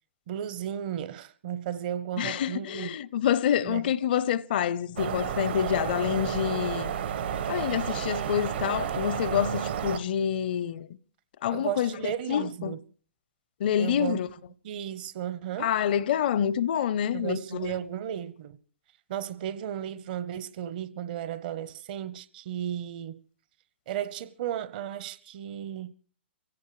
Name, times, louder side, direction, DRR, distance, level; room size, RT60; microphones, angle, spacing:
voice 1, 0.3-2.9 3.6-3.9 11.5-12.8 13.8-14.2 14.6-15.7 17.1-18.6 19.1-23.2 23.9-25.9, right 10 dB, 50° right, 0.9 m, -34 dB
voice 2, 2.2-6.9 7.5-10.9 11.4-12.8 13.6-14.3 15.6-17.8, left 9 dB, 55° left, 0.7 m, -27 dB
sound 1, 5.0-10.0, right 9 dB, 65° right, 1.2 m, -31 dB
27.0 x 17.0 x 3.2 m
hypercardioid pair, 140°, 6 cm